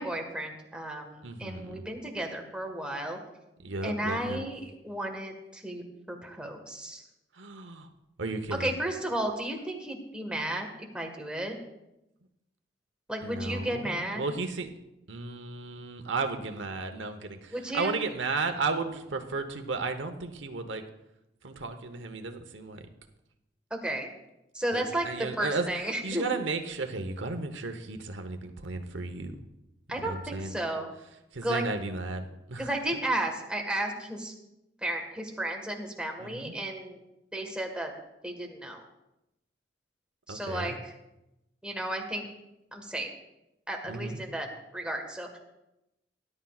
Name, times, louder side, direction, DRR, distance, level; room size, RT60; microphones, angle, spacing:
voice 1, 0.0-3.2 3.8-4.6 4.8-7.0 8.6-10.7 10.9-11.6 13.1-14.2 17.5-18.0 23.7-24.1 24.5-26.3 29.9-30.9 31.4-31.6 32.6-34.3 34.8-37.0 37.3-37.9 38.2-38.8 40.3-40.7 41.6-42.3 42.7-43.1 43.7-44.5 44.7-45.4, right 1 dB, 5° right, 1 dB, 1.5 m, -33 dB
voice 2, 1.2-1.8 3.6-4.5 7.3-7.9 8.2-8.7 13.2-14.7 15.1-20.8 21.4-22.9 24.7-29.4 30.0-30.6 31.3-32.7 36.2-36.5 40.3-40.8 43.9-44.2, right 3 dB, 85° right, 7 dB, 1.0 m, -34 dB
19.0 x 11.0 x 2.4 m, 0.91 s
head